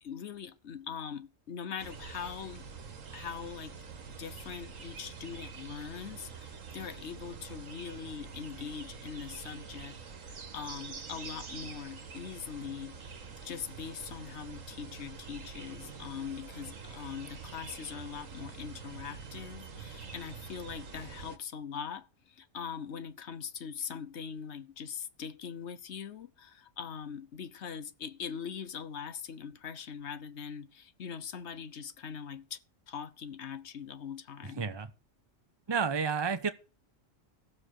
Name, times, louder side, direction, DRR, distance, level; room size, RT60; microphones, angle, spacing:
voice 1, 0.0-2.7 3.1-3.8 4.2-10.0 10.2-13.1 13.4-32.6 32.9-34.6, left 7 dB, 60° left, 1.1 m, -42 dB
sound 1, 1.8-21.4, right 5 dB, 75° right, 1.7 m, -46 dB
voice 2, 34.6-34.9 35.7-36.5, right 6 dB, 25° right, 0.8 m, -30 dB
15.5 x 7.1 x 6.5 m
omnidirectional pair, 1.4 m